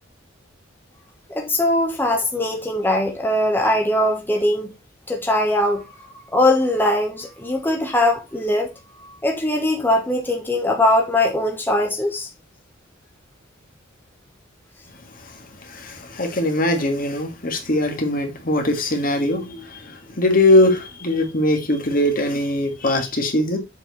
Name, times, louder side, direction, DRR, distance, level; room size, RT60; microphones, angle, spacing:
voice 1, 1.3-4.7 5.1-5.8 6.3-8.7 9.2-12.3, left 1 dB, 10° left, 1.2 m, -20 dB
voice 2, 15.7-23.6, left 1 dB, 45° left, 1.7 m, -21 dB
7.2 x 4.6 x 4.0 m
head